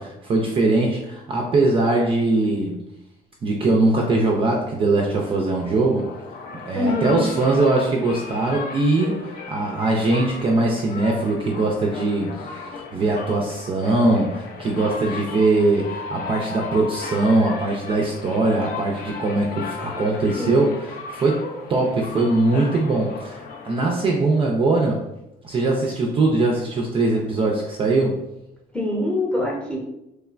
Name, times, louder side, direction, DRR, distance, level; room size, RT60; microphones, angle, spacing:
voice 1, 0.0-2.8 3.4-6.1 6.7-12.4 12.9-25.0 25.4-28.2, right 2 dB, 30° right, -1 dB, 0.4 m, -21 dB
sound 1, 5.1-24.4, left 5 dB, 55° left, 0.4 m, -36 dB
voice 2, 6.7-7.2 20.4-20.6 28.7-29.8, left 2 dB, 5° left, -2 dB, 0.8 m, -24 dB
3.1 x 2.1 x 2.3 m, 0.88 s
cardioid pair, 110°, 17 cm